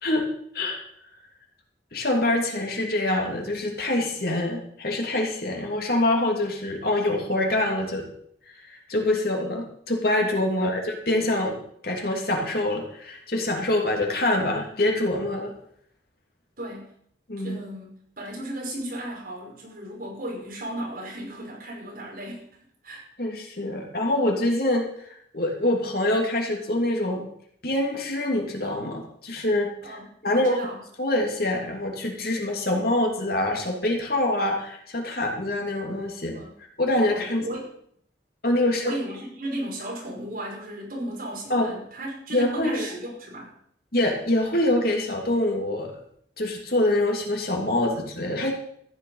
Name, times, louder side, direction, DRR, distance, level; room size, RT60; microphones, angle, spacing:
voice 1, 1.9-8.1 8.5-11.6 11.8-15.5 17.3-17.6 23.2-27.2 27.6-30.0 30.2-30.6 31.0-36.4 36.8-37.5 38.4-38.9 41.5-41.7 42.3-42.9 43.9-46.0 46.4-48.5, left 1 dB, 55° left, 1 dB, 2.9 m, -25 dB
voice 2, 16.6-16.9 17.4-22.5 22.8-23.0 29.8-30.8 36.3-36.5 37.1-37.7 38.6-43.5, right 1 dB, 55° right, -2 dB, 5.3 m, -35 dB
14.5 x 9.9 x 5.7 m, 0.67 s
head